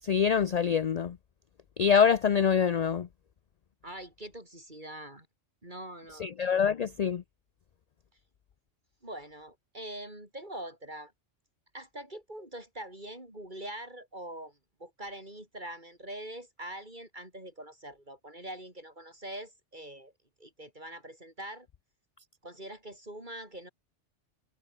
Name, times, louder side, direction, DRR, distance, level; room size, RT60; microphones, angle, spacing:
voice 1, 0.1-1.1 1.8-3.1 6.2-7.2, left 7 dB, 50° left, 0.5 m, -25 dB
voice 2, 3.8-5.3 5.6-6.6 9.0-11.1 11.7-20.1 20.4-21.7 22.4-23.7, right 1 dB, 40° right, 8.1 m, -43 dB
omnidirectional pair, 1.3 m